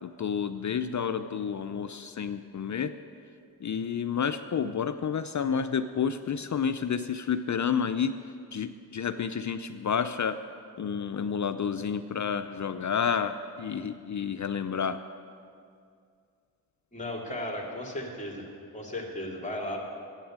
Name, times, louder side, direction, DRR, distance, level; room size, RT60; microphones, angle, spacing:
voice 1, 0.0-2.9 3.6-8.2 8.5-10.4 10.8-15.0, left 7 dB, 45° left, 10 dB, 0.5 m, -30 dB
voice 2, 16.9-18.5 18.7-19.8, left 1 dB, 15° left, -1 dB, 3.0 m, -35 dB
11.5 x 8.8 x 7.4 m, 2.3 s
cardioid pair, 50°, 42 cm